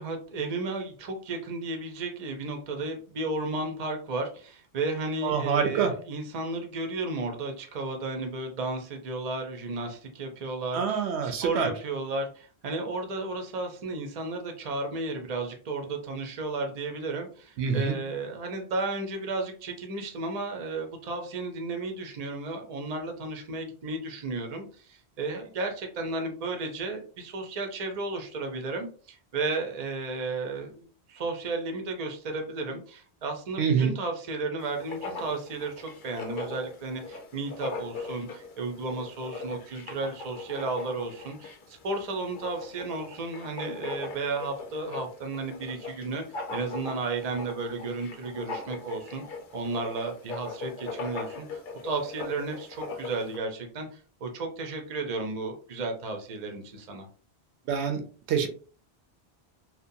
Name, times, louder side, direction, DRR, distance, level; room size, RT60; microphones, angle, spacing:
voice 1, 0.0-46.2 46.5-49.2 49.5-57.1, right 3 dB, 45° right, 4 dB, 0.6 m, -33 dB
voice 2, 5.2-5.9 10.7-11.7 17.6-18.0 33.6-33.9 57.7-58.0 58.3-58.5, right 6 dB, 85° right, 6 dB, 0.9 m, -25 dB
Writing, 34.6-53.4, left 3 dB, 60° left, 0.6 m, -40 dB
2.7 x 2.2 x 2.6 m, 0.40 s
omnidirectional pair, 1.1 m